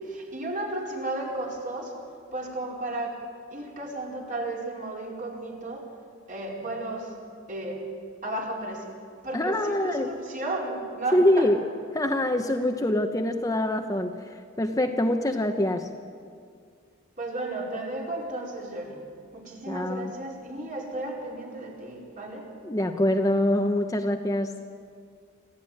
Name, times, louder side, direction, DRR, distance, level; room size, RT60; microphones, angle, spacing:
voice 1, 0.0-1.9 2.3-3.2 3.5-5.9 6.3-7.2 7.5-7.9 8.2-8.9 9.2-11.5 17.1-19.0 19.3-22.5, right 2 dB, 40° right, -1 dB, 4.8 m, -34 dB
voice 2, 9.3-10.1 11.1-11.6 11.9-15.9 19.7-20.1 22.6-24.5, left 1 dB, 15° left, 5 dB, 0.9 m, -24 dB
26.5 x 15.5 x 9.9 m, 2.2 s
head